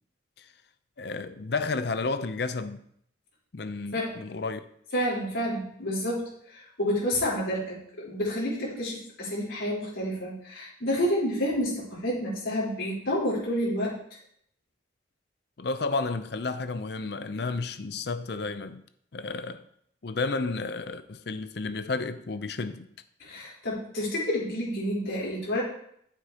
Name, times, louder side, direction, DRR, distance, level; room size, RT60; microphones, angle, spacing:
voice 1, 1.0-2.8 3.5-4.7 15.6-18.8 19.1-19.6 20.0-22.9, left 3 dB, 55° left, 0.6 m, -32 dB
voice 2, 4.9-14.0 23.2-25.6, equal, 90° left, 4.0 m, -29 dB
9.7 x 8.2 x 2.9 m
head